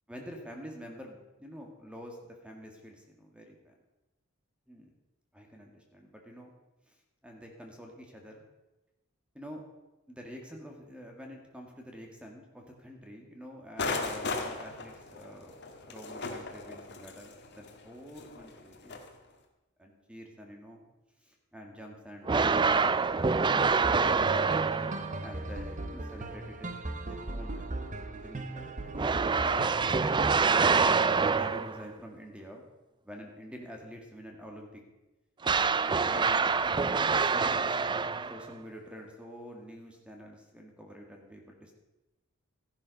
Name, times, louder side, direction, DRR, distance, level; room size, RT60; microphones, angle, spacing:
voice 1, 0.1-3.5 4.7-4.9 5.4-6.5 6.9-7.0 7.2-8.4 9.3-9.6 10.1-19.0 19.8-20.8 21.2-24.2 25.2-26.8 27.0-27.7 28.1-29.0 30.4-32.7 33.0-34.8 36.0-37.9 38.3-41.7, equal, 5° right, 1 dB, 1.8 m, -47 dB
sound 1, 13.8-19.1, left 3 dB, 55° left, 1.8 m, -37 dB
sound 2, 22.3-25.2 29.0-31.9 35.4-38.5, right 5 dB, 20° right, 0.4 m, -26 dB
sound 3, 23.8-30.6, right 2 dB, 40° right, 1.0 m, -38 dB
14.5 x 11.0 x 5.2 m, 1.0 s
head